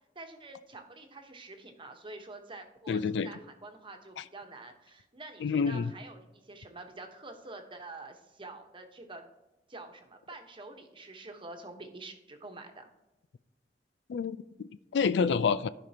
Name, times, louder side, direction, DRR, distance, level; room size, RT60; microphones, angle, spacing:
voice 1, 0.1-9.2 9.7-12.9, right 2 dB, 30° right, 4 dB, 1.1 m, -47 dB
voice 2, 2.9-3.3 5.4-5.9 14.1-15.7, left 5 dB, 70° left, 15 dB, 0.3 m, -28 dB
14.5 x 5.1 x 2.9 m, 1.0 s
head